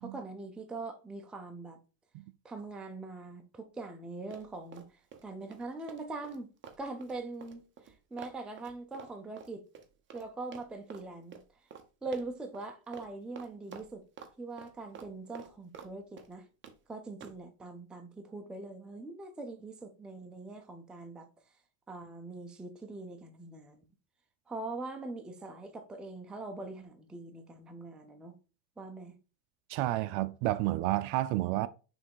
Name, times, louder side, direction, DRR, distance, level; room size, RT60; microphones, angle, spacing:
voice 1, 0.0-1.8 2.4-6.5 6.8-9.6 10.1-11.4 12.0-14.0 14.4-16.5 16.9-21.3 21.9-23.8 24.5-28.3 28.8-29.1, right 3 dB, ahead, 0.5 m, -42 dB
Run, 4.3-5.2 5.5-10.3 10.5-11.1 11.3-11.5 11.7-11.9 12.1-12.7 12.9-13.1 13.4-14.3 14.6-15.9 16.2-16.8 17.2-17.4, right 6 dB, 25° right, 0.9 m, -49 dB
voice 2, 29.7-31.7, right 16 dB, 55° right, 0.6 m, -30 dB
6.3 x 3.5 x 4.6 m
supercardioid pair, 135°, 50 cm